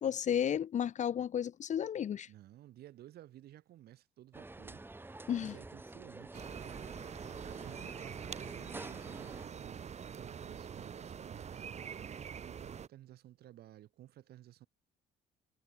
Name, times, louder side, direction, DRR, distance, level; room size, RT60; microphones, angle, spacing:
voice 1, 0.0-2.3 5.3-5.5, left 9 dB, 45° left, 1.0 m, -33 dB
voice 2, 2.3-6.5 7.2-14.7, right 13 dB, 70° right, 5.0 m, -56 dB
sound 1, 4.3-9.5, right 2 dB, 10° right, 4.2 m, -49 dB
sound 2, 6.3-12.9, right 7 dB, 40° right, 5.3 m, -45 dB
cardioid pair, 110°, 17 cm